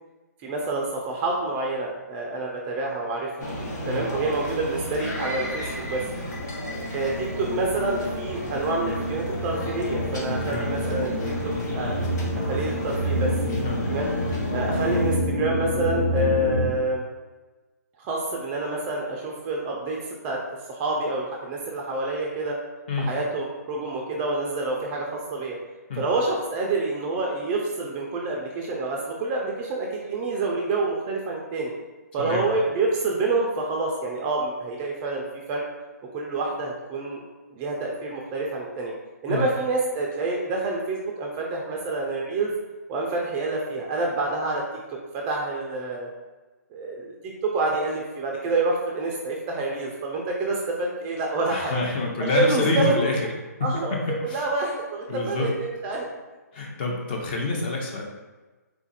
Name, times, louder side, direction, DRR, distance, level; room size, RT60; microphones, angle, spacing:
voice 1, 0.4-3.3 3.9-6.0 6.9-13.3 13.9-14.1 14.5-17.0 18.0-20.0 20.2-20.4 20.7-22.6 23.0-25.6 26.0-31.7 32.1-35.2 35.5-35.6 36.1-37.2 37.5-38.9 39.2-42.5 42.9-44.6 45.1-46.1 46.7-51.8 52.2-53.0 53.6-56.1, right 2 dB, 20° right, -1 dB, 0.4 m, -27 dB
sound 1, 3.4-15.2, equal, 85° left, 1.4 m, -34 dB
sound 2, 6.4-16.7, equal, 50° left, 1.3 m, -28 dB
voice 2, 51.5-53.2 53.6-54.0 54.3-54.4 55.1-55.5 56.5-58.0, left 3 dB, 35° left, 0 dB, 0.8 m, -27 dB
3.8 x 2.4 x 4.1 m, 1.2 s
hypercardioid pair, 155°, 9 cm